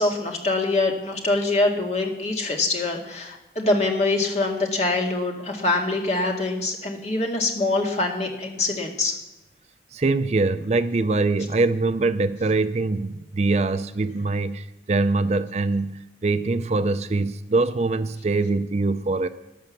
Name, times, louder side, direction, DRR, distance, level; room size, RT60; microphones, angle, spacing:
voice 1, 0.0-9.1, left 2 dB, 40° left, 1 dB, 2.0 m, -24 dB
voice 2, 9.9-19.3, right 3 dB, 35° right, 12 dB, 0.5 m, -23 dB
12.5 x 11.0 x 7.2 m, 0.97 s
head